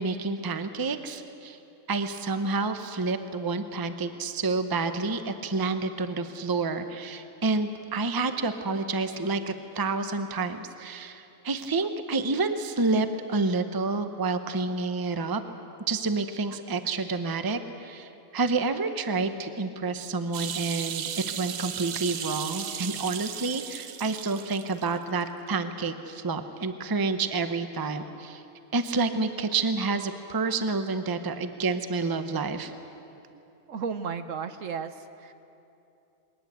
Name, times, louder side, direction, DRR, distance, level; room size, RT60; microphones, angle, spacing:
voice 1, 0.0-1.6 1.9-15.4 15.9-28.4 28.7-32.7, right 3 dB, 20° right, 9 dB, 0.7 m, -29 dB
sound 1, 20.3-24.9 25.2-25.3, right 9 dB, 80° right, 1.3 m, -35 dB
voice 2, 33.7-35.3, right 6 dB, 60° right, 10 dB, 1.1 m, -34 dB
21.5 x 19.0 x 8.2 m, 2.8 s
omnidirectional pair, 1.6 m